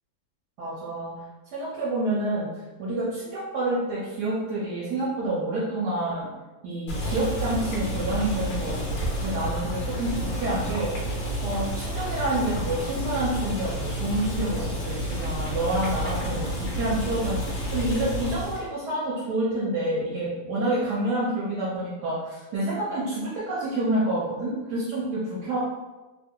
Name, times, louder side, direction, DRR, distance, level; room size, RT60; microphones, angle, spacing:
voice 1, 0.6-1.1 1.5-2.5 2.8-6.3 6.6-10.9 11.4-16.5 16.7-17.4 17.7-25.6, right 1 dB, 65° right, -7 dB, 1.2 m, -28 dB
Boiling, 6.9-18.7, equal, 55° left, 1.2 m, -30 dB
3.2 x 2.1 x 3.6 m, 1.2 s
omnidirectional pair, 2.1 m